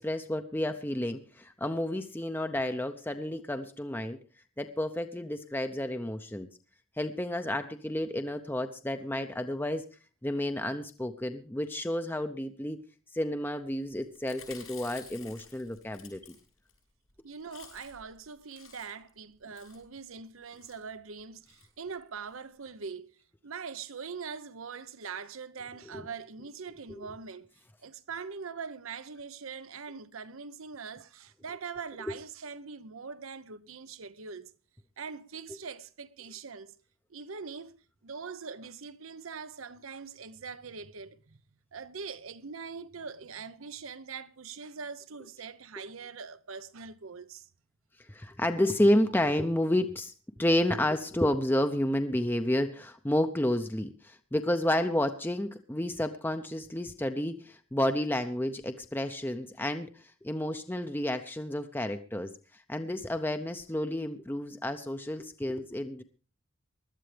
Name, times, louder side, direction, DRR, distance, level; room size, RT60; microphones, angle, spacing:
voice 1, 0.0-4.2 4.6-6.5 7.0-9.8 10.2-12.8 13.1-16.3 25.9-26.0 26.9-27.1 32.0-32.1 48.1-50.1 50.4-66.0, left 1 dB, 10° left, 0.6 m, -30 dB
Chewing mastication, 14.1-16.8 17.1-17.2 17.4-18.1 18.4-19.1 19.5-19.9 20.5-20.8 21.5-21.7 22.0-22.1 22.3-22.4, left 8 dB, 85° left, 7.4 m, -51 dB
voice 2, 17.2-23.2 23.4-27.5 27.8-34.5 35.0-36.7 37.1-41.4 41.7-47.5, right 5 dB, 80° right, 0.8 m, -42 dB
20.5 x 12.5 x 3.4 m
head